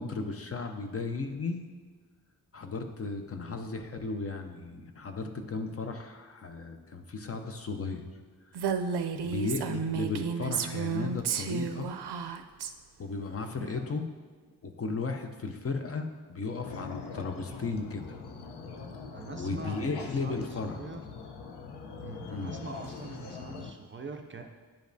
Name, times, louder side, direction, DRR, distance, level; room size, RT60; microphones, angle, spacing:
voice 1, 0.0-1.7 2.5-8.1 8.5-8.6 9.2-11.9 13.0-14.1 14.6-18.2 19.4-20.8 22.3-22.6, left 4 dB, 35° left, 5 dB, 0.5 m, -35 dB
Female speech woman speaking, 8.6-12.7, right 6 dB, 85° right, 0.5 m, -32 dB
voice 2, 13.6-14.0 19.1-21.0 22.0-24.4, right 3 dB, 30° right, 4 dB, 0.4 m, -43 dB
sound 1, 16.6-23.7, left 5 dB, 85° left, 0.7 m, -42 dB
10.5 x 5.1 x 2.6 m, 1.5 s
wide cardioid pair, 145°, 39 cm